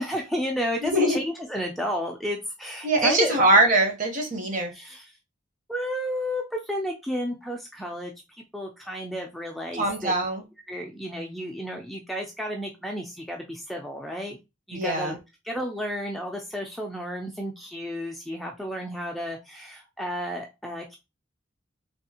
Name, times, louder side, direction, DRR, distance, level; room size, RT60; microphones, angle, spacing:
voice 1, 0.0-3.4 4.7-5.1 5.7-8.1 8.5-10.1 10.6-14.4 14.7-15.2 15.4-21.0, equal, ahead, 1 dB, 0.3 m, -32 dB
voice 2, 2.8-4.7 9.7-10.4 14.7-15.1, right 1 dB, 40° right, 3 dB, 0.9 m, -22 dB
3.4 x 2.3 x 2.8 m, 0.24 s
head